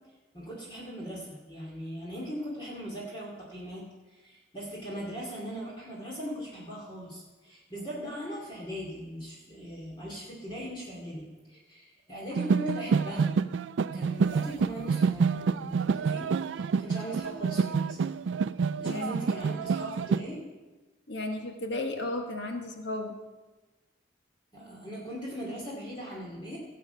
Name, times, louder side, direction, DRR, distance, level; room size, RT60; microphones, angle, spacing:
voice 1, 0.3-3.9 4.2-13.3 13.9-18.0 18.8-20.4 24.5-26.6, equal, 25° left, -4 dB, 2.4 m, -39 dB
sound 1, 12.3-20.2, right 5 dB, 80° right, 0.4 m, -28 dB
voice 2, 18.8-19.1 21.1-23.2, left 2 dB, 75° left, 3 dB, 1.4 m, -34 dB
17.5 x 7.6 x 5.7 m, 1.2 s
head